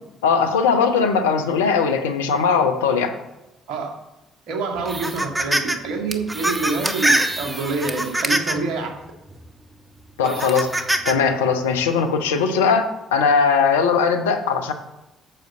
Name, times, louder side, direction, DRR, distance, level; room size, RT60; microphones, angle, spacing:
voice 1, 0.2-3.1 10.2-10.7 11.0-14.7, left 5 dB, 75° left, 6 dB, 1.0 m, -19 dB
voice 2, 4.5-8.9 10.2-10.4, right 4 dB, 60° right, 2 dB, 2.1 m, -27 dB
sound 1, 4.8-5.8 6.1-8.7 9.3-9.4 10.2-11.1, right 1 dB, 15° right, 1.4 m, -23 dB
9.1 x 6.7 x 6.7 m, 0.97 s
figure-of-eight pair, 45°, 0 cm